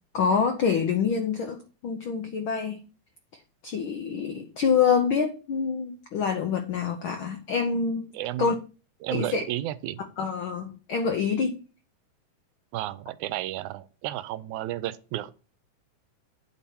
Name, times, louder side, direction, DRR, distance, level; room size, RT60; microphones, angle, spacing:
voice 1, 0.1-2.8 3.6-8.0 8.4-8.5 9.1-9.4 10.2-11.6, left 6 dB, 90° left, 1.1 m, -26 dB
voice 2, 8.1-8.5 9.0-10.0 12.7-15.3, right 14 dB, 80° right, 2.0 m, -32 dB
8.8 x 4.3 x 6.9 m
omnidirectional pair, 3.4 m